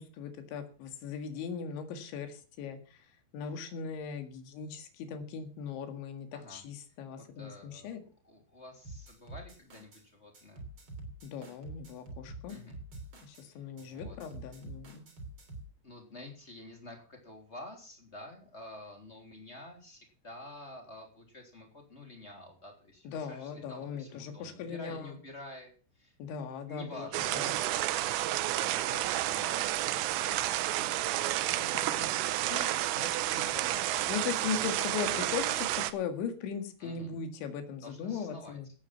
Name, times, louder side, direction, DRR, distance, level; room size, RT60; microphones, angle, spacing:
voice 1, 0.0-2.8 3.3-8.0 11.2-12.6 13.2-15.0 23.1-25.2 26.2-27.6 31.5-31.7 32.0-32.1 32.5-32.8 34.1-38.7, left 6 dB, 70° left, 7 dB, 4.1 m, -39 dB
voice 2, 6.3-6.7 7.2-8.0 8.2-10.7 12.5-12.8 13.4-14.2 15.8-26.1 26.7-34.1 36.8-37.1 37.8-38.6, left 1 dB, 15° left, 2 dB, 2.6 m, -49 dB
sound 1, 8.8-10.0 10.3-13.5 13.8-15.7, right 2 dB, 30° right, 3.4 m, -46 dB
sound 2, 27.1-35.9, right 15 dB, 85° right, 3.6 m, -31 dB
17.0 x 8.6 x 5.9 m, 0.39 s
omnidirectional pair, 5.8 m